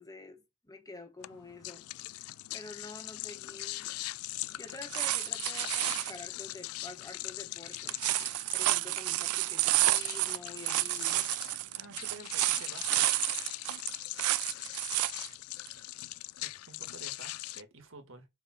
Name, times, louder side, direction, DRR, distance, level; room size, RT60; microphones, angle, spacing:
voice 1, 0.0-1.8 2.5-4.0 4.5-8.0 8.5-11.2, left 2 dB, 15° left, 1.3 m, -48 dB
sound 1, 1.2-17.6, left 18 dB, 75° left, 0.3 m, -41 dB
sound 2, 4.7-6.2 7.7-15.3 15.7-15.8, right 16 dB, 80° right, 0.4 m, -30 dB
voice 2, 11.7-13.0 16.4-18.3, right 3 dB, 65° right, 1.8 m, -51 dB
5.0 x 4.8 x 5.9 m
head